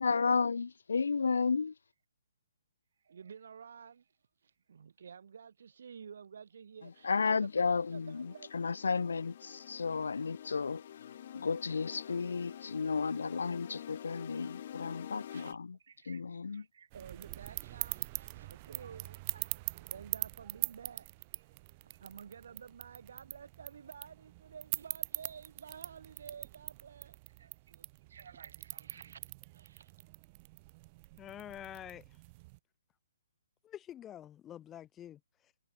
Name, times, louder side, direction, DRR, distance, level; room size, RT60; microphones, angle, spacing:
voice 1, 0.0-1.7 7.0-10.8 11.3-15.8 16.1-16.6, left 5 dB, 80° left, 0.7 m, -33 dB
voice 2, 3.0-4.1 4.4-8.5 12.0-12.4 15.3-29.9, right 7 dB, 50° right, 5.2 m, -52 dB
sound 1, 6.8-15.5, left 10 dB, 35° left, 1.9 m, -49 dB
sound 2, 16.9-32.6, right 24 dB, 20° right, 1.7 m, -43 dB
voice 3, 31.2-32.2 33.6-35.5, left 11 dB, 10° left, 0.6 m, -47 dB
hypercardioid pair, 175°, 0 cm